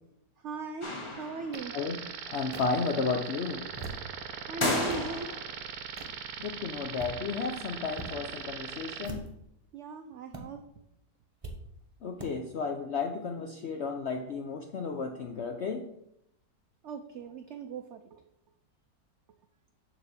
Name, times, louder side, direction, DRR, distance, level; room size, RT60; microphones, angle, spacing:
voice 1, 0.4-1.7 4.5-5.3 9.7-10.6 16.8-18.2, right 4 dB, 90° right, 7 dB, 0.6 m, -39 dB
sound 1, 0.8-1.8 4.6-5.6, left 1 dB, 20° left, 1.0 m, -32 dB
sound 2, 1.5-1.6 2.5-2.6 3.6-4.1 4.6-5.1 6.0-6.2 6.8-7.2 7.9-8.1 9.0-9.5 10.3-10.4 11.4-11.6 12.2-12.3, right 2 dB, 25° right, 0.9 m, -42 dB
sound 3, 1.5-9.1, right 7 dB, 65° right, 1.1 m, -40 dB
voice 2, 2.3-3.6 6.4-9.2 12.0-15.9, left 4 dB, 70° left, 4 dB, 0.6 m, -33 dB
6.9 x 4.0 x 6.6 m, 0.78 s
omnidirectional pair, 1.8 m